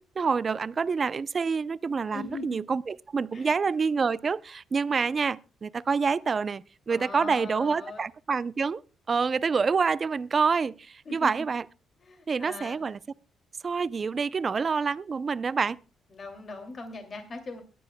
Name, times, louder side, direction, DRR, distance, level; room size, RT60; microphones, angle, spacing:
voice 1, 0.0-8.8 9.1-11.7 12.3-13.0 13.6-15.8, right 5 dB, 40° right, 0.5 m, -27 dB
voice 2, 2.1-2.6 3.3-3.5 6.9-8.0 11.1-11.3 12.0-12.8 16.1-17.6, left 3 dB, 40° left, 2.5 m, -40 dB
22.5 x 10.0 x 2.2 m
cardioid pair, 90°, 0 cm